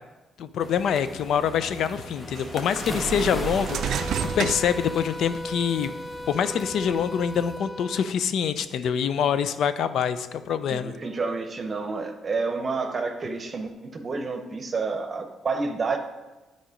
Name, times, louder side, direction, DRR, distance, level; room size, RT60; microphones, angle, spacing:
voice 1, 0.4-4.1 4.3-5.9 6.3-10.9, left 7 dB, 70° left, 12 dB, 0.5 m, -25 dB
sound 1, 0.6-7.6, left 1 dB, 25° left, 1.1 m, -39 dB
sound 2, 1.3-1.4 2.4-5.4 6.0-7.0, right 9 dB, 70° right, 0.3 m, -31 dB
sound 3, 3.5-8.1, left 1 dB, 10° left, 0.4 m, -37 dB
voice 2, 10.7-16.0, right 4 dB, 40° right, 6 dB, 0.9 m, -29 dB
10.0 x 4.3 x 5.0 m, 1.1 s
cardioid pair, 90°, 0 cm